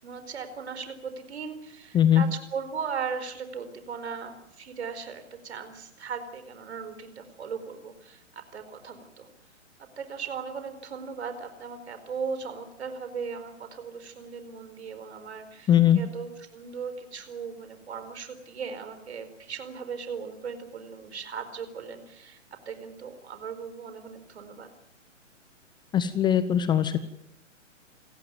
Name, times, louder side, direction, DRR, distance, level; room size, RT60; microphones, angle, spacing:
voice 1, 0.0-9.3 10.0-22.4 22.6-24.7, right 6 dB, 60° right, 9 dB, 4.7 m, -38 dB
voice 2, 15.7-16.0 25.9-27.0, left 10 dB, 10° left, 14 dB, 0.8 m, -20 dB
28.5 x 15.0 x 9.5 m, 0.83 s
figure-of-eight pair, 120°, 37 cm